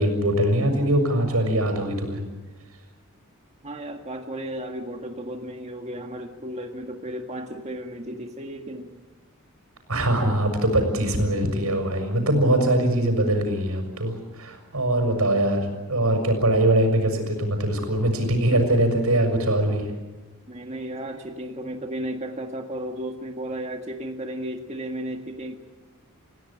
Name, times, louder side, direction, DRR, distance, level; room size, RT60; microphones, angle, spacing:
voice 1, 0.0-2.2 9.9-19.9, right 1 dB, 85° right, 6 dB, 6.6 m, -22 dB
voice 2, 3.6-8.9 20.5-25.5, right 1 dB, 30° right, 3 dB, 1.8 m, -34 dB
29.0 x 16.5 x 8.8 m, 1.2 s
head